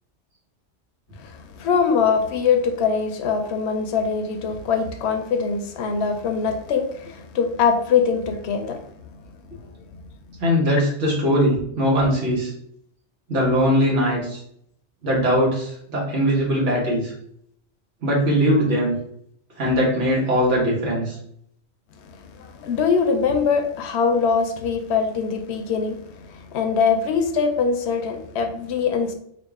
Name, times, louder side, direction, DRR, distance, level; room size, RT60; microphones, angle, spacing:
voice 1, 1.2-8.8 9.9-10.0 22.0-29.1, left 5 dB, 70° left, 6 dB, 0.8 m, -23 dB
voice 2, 10.4-12.5 13.3-14.4 15.0-17.1 18.0-18.9 19.6-21.2, equal, 85° right, -4 dB, 1.7 m, -20 dB
3.9 x 2.4 x 3.5 m, 0.69 s
omnidirectional pair, 1.2 m